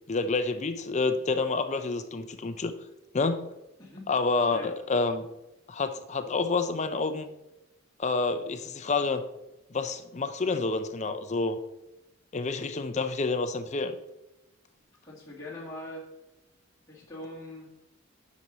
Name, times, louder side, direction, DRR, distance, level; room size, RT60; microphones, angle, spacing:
voice 1, 0.1-2.7 3.1-3.5 4.1-5.2 5.7-7.3 8.0-9.2 9.7-11.6 12.3-13.9, left 3 dB, 35° left, 10 dB, 0.5 m, -28 dB
voice 2, 3.8-4.7 15.0-16.1 16.9-17.7, left 1 dB, 15° left, -7 dB, 2.0 m, -42 dB
9.7 x 6.1 x 4.0 m, 0.94 s
head